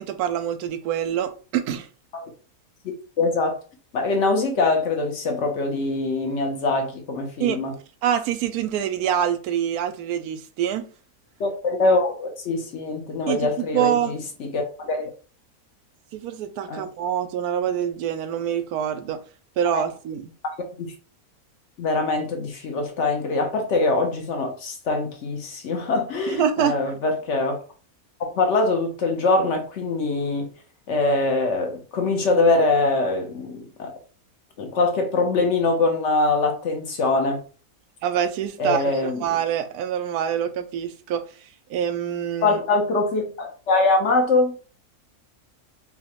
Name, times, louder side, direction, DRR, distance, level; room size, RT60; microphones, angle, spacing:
voice 1, 0.0-1.9 7.4-7.6 8.0-10.8 13.3-14.1 16.1-19.2 19.6-20.3 26.3-26.8 38.0-41.3 41.7-42.6, right 9 dB, 85° right, 1.1 m, -25 dB
voice 2, 3.2-3.6 3.9-7.7 11.4-15.1 16.7-16.8 19.7-19.8 20.8-20.9 21.8-27.6 28.2-30.5 30.9-33.9 34.6-37.4 38.6-39.2 42.4-44.5, left 3 dB, 60° left, 0.9 m, -23 dB
5.5 x 2.1 x 2.9 m
omnidirectional pair, 1.6 m